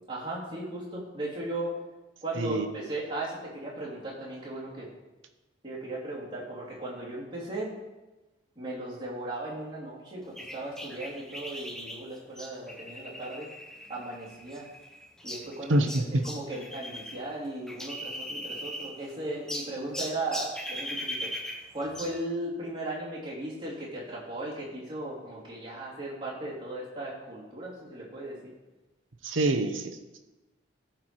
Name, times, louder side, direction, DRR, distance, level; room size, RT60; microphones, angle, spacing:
voice 1, 0.1-1.7 2.2-4.9 5.6-7.7 8.6-13.5 13.9-14.7 15.2-21.3 21.7-28.5, right 1 dB, 25° right, -7 dB, 3.0 m, -37 dB
voice 2, 2.4-2.7 15.7-16.2 29.2-30.2, right 1 dB, 80° right, 6 dB, 0.9 m, -26 dB
sound 1, 10.4-17.2 17.4-19.1 19.5-22.2, equal, 5° left, 0.8 m, -39 dB
14.0 x 4.7 x 4.7 m, 1.1 s
head